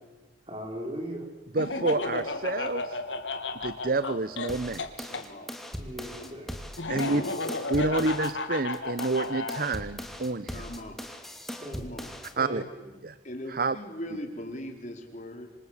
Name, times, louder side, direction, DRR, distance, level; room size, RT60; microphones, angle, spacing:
voice 1, 0.5-1.2 5.8-6.5 11.6-11.9 12.4-12.9, right 1 dB, 30° right, 2 dB, 5.7 m, -38 dB
voice 2, 1.5-3.0 3.6-5.1 6.9-7.2 7.7-10.7 12.4-12.6 13.0-13.2 13.5-13.8, right 3 dB, 50° right, 14 dB, 0.9 m, -29 dB
Laughter, 1.6-5.2 6.8-9.7, left 3 dB, 75° left, 2.8 m, -33 dB
sound 1, 4.5-8.3 8.7-12.3, equal, ahead, 2.6 m, -40 dB
voice 3, 5.1-5.5 6.2-6.3 10.5-11.0 11.7-12.1 13.2-15.5, left 1 dB, 40° left, 3 dB, 4.8 m, -40 dB
27.0 x 26.0 x 8.4 m, 1.2 s
head